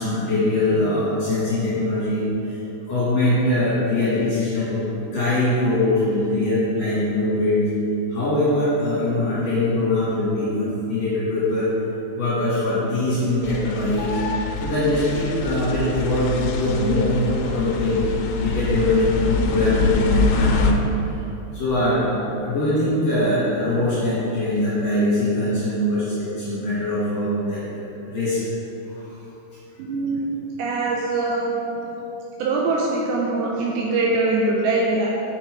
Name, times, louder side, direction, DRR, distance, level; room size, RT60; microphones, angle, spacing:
voice 1, 0.0-2.6 2.9-7.7 8.1-11.7 12.2-14.2 14.6-18.0 18.3-20.8 21.5-28.4 28.9-29.1, left 1 dB, 50° left, -10 dB, 2.3 m, -22 dB
sound 1, 13.4-20.7, left 3 dB, 85° left, 3.0 m, -24 dB
voice 2, 29.8-30.3 30.6-31.6 32.4-35.1, right 2 dB, 80° right, -3 dB, 2.6 m, -22 dB
7.0 x 7.0 x 4.7 m, 2.9 s
omnidirectional pair, 5.5 m